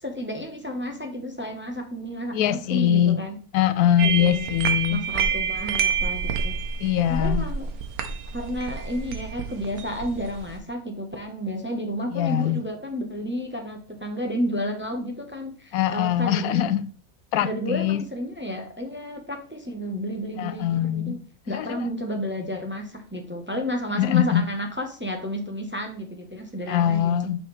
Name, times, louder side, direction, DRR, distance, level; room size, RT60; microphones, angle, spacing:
voice 1, 0.0-3.4 4.0-4.5 4.9-6.6 7.1-7.7 8.3-16.7 17.4-21.2 21.5-27.3, equal, 10° right, 0.8 m, -31 dB
voice 2, 2.3-3.2 3.5-5.0 6.8-7.4 12.1-12.6 15.7-16.9 17.3-18.0 20.4-21.2 21.5-21.8 23.9-24.4 26.7-27.4, left 11 dB, 85° left, 1.1 m, -22 dB
sound 1, 4.0-10.6, right 6 dB, 85° right, 1.4 m, -28 dB
6.2 x 5.9 x 3.3 m
omnidirectional pair, 1.5 m